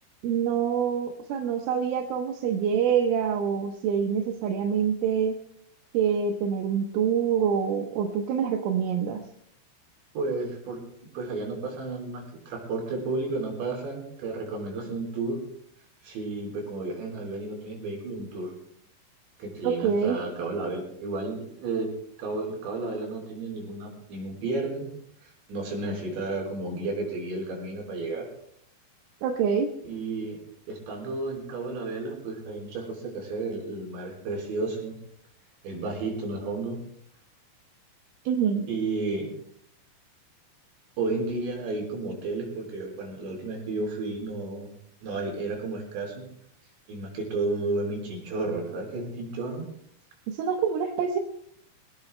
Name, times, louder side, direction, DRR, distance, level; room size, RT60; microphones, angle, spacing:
voice 1, 0.2-5.4 5.9-9.2 19.6-20.2 29.2-29.7 38.3-38.7 50.3-51.2, right 7 dB, 85° right, 2 dB, 3.6 m, -26 dB
voice 2, 10.1-10.8 11.1-15.4 16.0-18.5 19.4-21.9 22.2-24.9 25.2-28.3 29.9-30.4 30.7-35.0 35.6-36.8 38.7-39.3 41.0-44.7 45.0-46.3 46.9-49.7, right 3 dB, 65° right, 0 dB, 6.7 m, -32 dB
25.5 x 18.5 x 2.2 m, 0.68 s
omnidirectional pair, 5.5 m